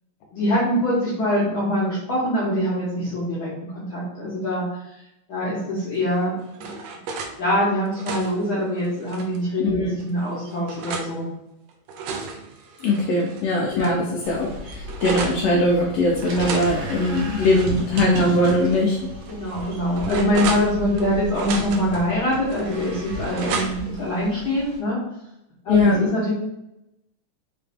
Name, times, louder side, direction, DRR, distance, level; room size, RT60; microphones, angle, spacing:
voice 1, 0.3-5.0 5.3-6.7 7.4-11.3 13.0-13.1 13.7-14.0 19.3-25.0 25.6-26.3, equal, 65° left, -7 dB, 1.2 m, -24 dB
sound 1, 6.1-7.4 7.8-9.4 10.0-11.1 11.7-13.4 13.8-13.9 14.2-15.4 16.3-18.2 18.5-18.6 19.2-21.0 21.3-22.0 22.5-24.0, right 4 dB, 80° right, 1.5 m, -33 dB
voice 2, 9.6-10.0 12.8-19.0 25.7-26.0, left 2 dB, 90° left, -1 dB, 1.4 m, -21 dB
sound 2, 14.2-24.8, right 1 dB, 65° right, 1.7 m, -34 dB
5.1 x 2.9 x 3.4 m, 0.85 s
omnidirectional pair, 3.6 m